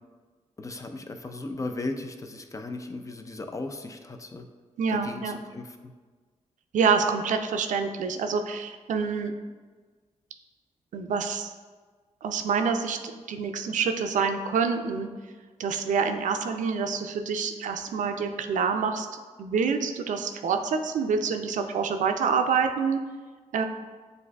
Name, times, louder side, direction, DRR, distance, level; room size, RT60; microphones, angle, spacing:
voice 1, 0.6-4.5 4.9-5.9, left 2 dB, 25° left, 5 dB, 0.4 m, -36 dB
voice 2, 4.8-5.4 6.7-9.3 10.9-11.5 12.2-15.1 15.6-19.1 19.4-23.0 23.5-23.6, right 5 dB, 80° right, 6 dB, 0.4 m, -27 dB
7.7 x 2.6 x 2.3 m, 1.4 s
cardioid pair, 95°, 13 cm